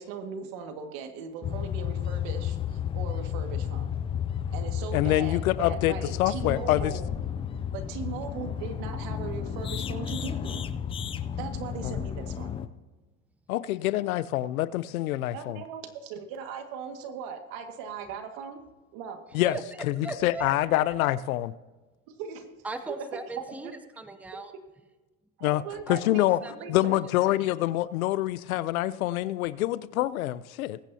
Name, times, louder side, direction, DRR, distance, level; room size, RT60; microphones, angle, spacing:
voice 1, 0.0-3.9 4.5-7.1 7.7-10.7 11.4-12.5 15.3-18.6 18.9-19.2 22.1-22.5 22.9-23.0 23.6-23.7 25.4-26.2 26.5-27.0, right 6 dB, 60° right, 2.0 m, -39 dB
sound 1, 1.4-12.7, left 9 dB, 15° left, 0.3 m, -32 dB
voice 2, 4.9-6.9 11.8-12.0 13.5-15.6 19.3-19.6 19.9-21.5 25.4-25.6 25.9-26.4 26.7-30.8, left 15 dB, 85° left, 0.7 m, -26 dB
voice 3, 19.4-20.5 22.6-23.7 24.0-24.5 25.9-26.5 26.8-27.0 27.4-27.5, right 3 dB, 5° right, 0.8 m, -38 dB
21.0 x 9.0 x 2.8 m
supercardioid pair, 115°, 41 cm